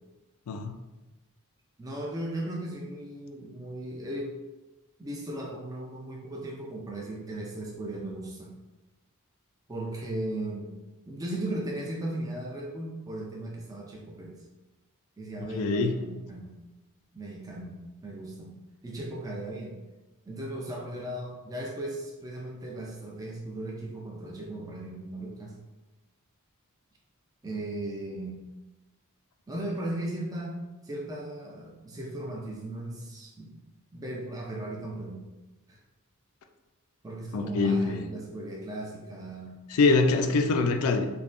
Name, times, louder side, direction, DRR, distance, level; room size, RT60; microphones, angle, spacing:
voice 1, 1.8-4.4 5.0-8.5 9.7-10.8 11.1-14.4 15.2-16.5 17.1-18.6 18.8-19.8 20.3-25.6 27.4-28.4 29.5-30.6 30.8-33.6 33.9-35.2 35.7-35.8 37.0-39.6, right 1 dB, 15° right, -2 dB, 0.3 m, -37 dB
voice 2, 15.5-15.9 37.3-38.1 39.7-41.1, left 3 dB, 70° left, 7 dB, 0.3 m, -24 dB
3.4 x 2.1 x 2.5 m, 1.1 s
head